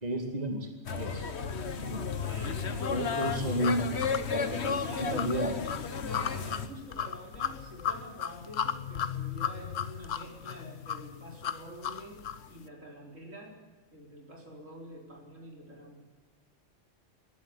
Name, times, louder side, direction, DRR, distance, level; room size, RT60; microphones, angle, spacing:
voice 1, 0.0-1.3 1.8-2.1 2.9-4.0 4.3-5.6, right 1 dB, 30° right, 4 dB, 2.4 m, -33 dB
sound 1, 0.9-6.7, left 5 dB, 60° left, 1.4 m, -33 dB
voice 2, 2.3-3.4 4.3-5.4 6.0-13.5 13.9-16.0, equal, 85° right, 1 dB, 4.7 m, -46 dB
sound 2, 2.4-12.5, left 8 dB, 80° left, 1.3 m, -36 dB
22.5 x 12.0 x 9.6 m, 1.3 s
omnidirectional pair, 1.3 m